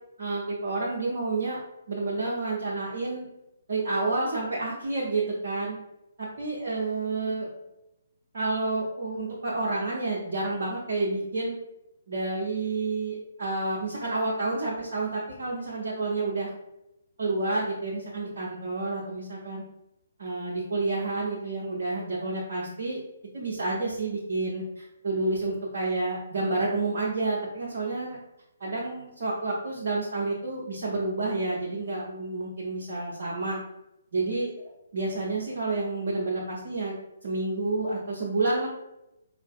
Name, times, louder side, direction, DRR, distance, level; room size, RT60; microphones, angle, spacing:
voice 1, 0.2-1.6 1.9-3.3 3.7-5.8 6.2-7.5 8.3-11.6 12.1-16.5 17.2-19.6 20.2-23.0 23.3-28.2 28.6-33.6 34.1-38.7, right 2 dB, 50° right, -4 dB, 0.5 m, -29 dB
3.6 x 2.4 x 2.3 m, 0.89 s
figure-of-eight pair, 130°, 0 cm